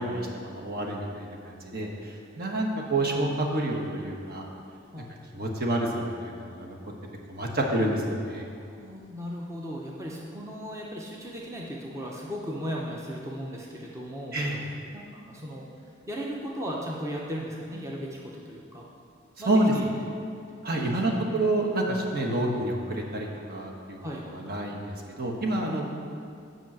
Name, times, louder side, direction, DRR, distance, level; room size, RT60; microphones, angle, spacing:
voice 1, 0.0-4.5 5.3-6.8 7.3-8.4 14.3-14.6 19.4-19.7 20.6-24.0 24.3-25.8, right 1 dB, 55° right, 0 dB, 1.3 m, -28 dB
voice 2, 8.8-14.4 14.9-15.7 16.1-18.9 19.4-19.8 20.7-20.8 21.1-21.2 24.0-24.2, equal, 15° right, -3 dB, 0.8 m, -36 dB
8.2 x 5.5 x 7.3 m, 2.4 s
head